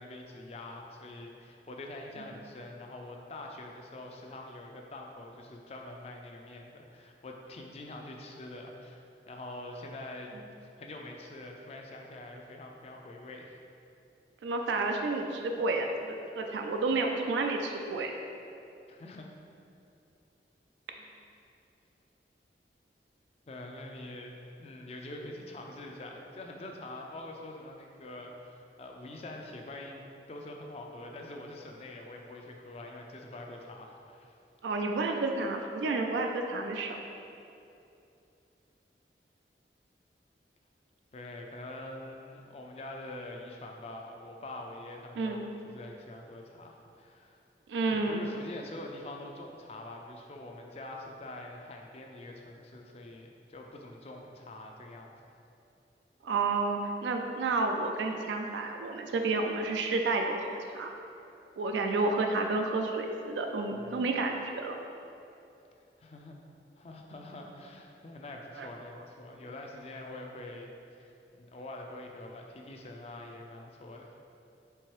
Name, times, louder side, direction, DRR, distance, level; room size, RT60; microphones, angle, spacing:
voice 1, 0.0-9.0 9.3-10.3 10.6-13.6 18.9-19.3 21.0-21.1 23.5-30.0 30.3-34.3 41.1-47.4 47.9-55.1 63.7-64.0 66.0-66.4 66.8-70.7 71.0-71.1 71.4-74.1, left 2 dB, 35° left, 1 dB, 0.4 m, -45 dB
voice 2, 14.4-18.1 34.6-37.0 45.2-45.4 47.7-48.2 56.2-60.4 60.7-60.9 61.6-64.8 68.6-68.7 68.9-69.0, right 3 dB, 90° right, 3 dB, 0.4 m, -30 dB
4.6 x 3.6 x 3.1 m, 2.7 s
head